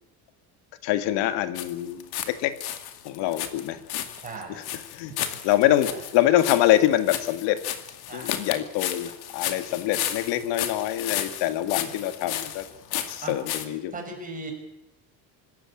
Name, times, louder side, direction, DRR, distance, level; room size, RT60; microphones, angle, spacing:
voice 1, 0.8-2.5 3.0-3.8 4.5-4.6 4.9-5.1 5.4-7.6 8.1-12.6 13.1-13.9, left 13 dB, 90° left, 10 dB, 2.0 m, -25 dB
sound 1, 1.5-2.3 2.6-13.7, left 11 dB, 60° left, 2.4 m, -33 dB
voice 2, 4.2-4.6 5.2-5.5 5.9-6.0 8.1-8.4 11.8-12.0 12.2-12.3 13.0-13.4 13.9-14.5, right 3 dB, 20° right, 2 dB, 6.4 m, -39 dB
26.0 x 14.0 x 8.6 m, 0.90 s
cardioid pair, 170°, 42 cm